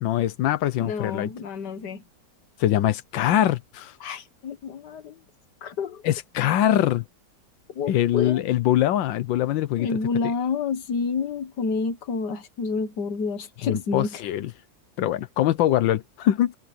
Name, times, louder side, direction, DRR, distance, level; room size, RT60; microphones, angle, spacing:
voice 1, 0.0-1.3 2.6-4.0 6.0-7.0 7.9-10.0 13.6-14.5 15.0-16.6, left 12 dB, 90° left, 1.5 m, -23 dB
voice 2, 0.8-2.0 4.0-5.2 5.6-6.0 7.7-8.4 9.8-14.2, left 5 dB, 65° left, 1.9 m, -29 dB
omnidirectional pair, 2.0 m